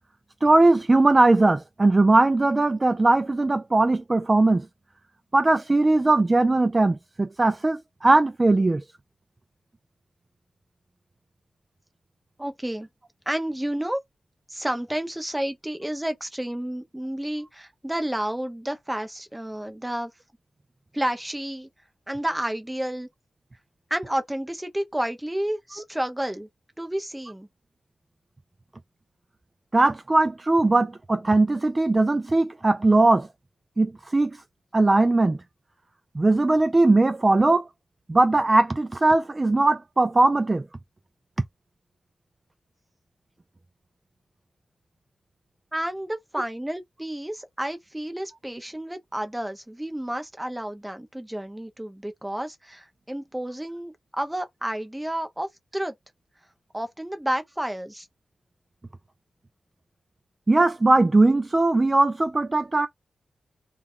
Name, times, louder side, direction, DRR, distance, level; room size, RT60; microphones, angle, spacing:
voice 1, 0.4-4.7 5.3-8.8 29.7-33.3 33.8-34.3 34.7-35.4 36.2-37.6 38.1-40.6 60.5-62.9, right 2 dB, 30° right, 0.3 m, -19 dB
voice 2, 12.4-12.9 13.3-14.0 14.5-20.1 20.9-21.7 22.1-23.1 23.9-26.5 26.8-27.5 45.7-55.9 56.7-58.1, right 1 dB, 10° right, 0.7 m, -30 dB
2.4 x 2.2 x 3.6 m
cardioid pair, 55°, 0 cm